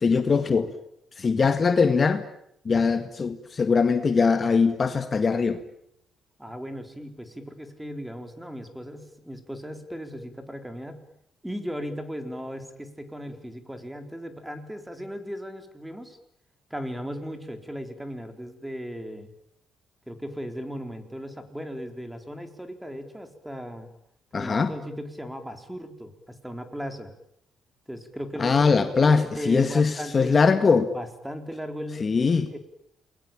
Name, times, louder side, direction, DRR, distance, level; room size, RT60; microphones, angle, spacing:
voice 1, 0.0-0.7 1.2-2.2 2.7-5.6 24.3-24.7 28.4-30.9 32.0-32.5, left 5 dB, 35° left, 2.0 m, -21 dB
voice 2, 6.4-11.0 11.4-16.2 16.7-19.3 20.1-23.9 24.3-27.1 27.9-30.4 30.9-32.6, equal, 5° right, 4.1 m, -37 dB
29.0 x 21.0 x 8.9 m
cardioid pair, 90°, 0 cm